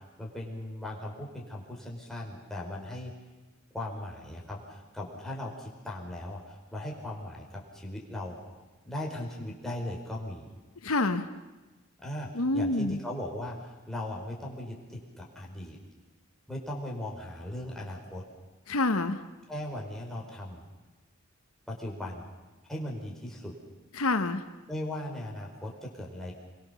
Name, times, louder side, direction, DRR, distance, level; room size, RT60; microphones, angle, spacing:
voice 1, 0.0-3.1 3.7-10.5 12.0-15.8 16.5-18.2 19.5-20.6 21.7-22.3 22.7-23.5 24.7-26.3, left 1 dB, ahead, -3 dB, 4.9 m, -38 dB
voice 2, 10.8-11.2 12.3-13.0 18.7-19.2 24.0-24.4, left 2 dB, 90° left, 9 dB, 1.3 m, -27 dB
27.0 x 23.5 x 7.1 m, 1.2 s
head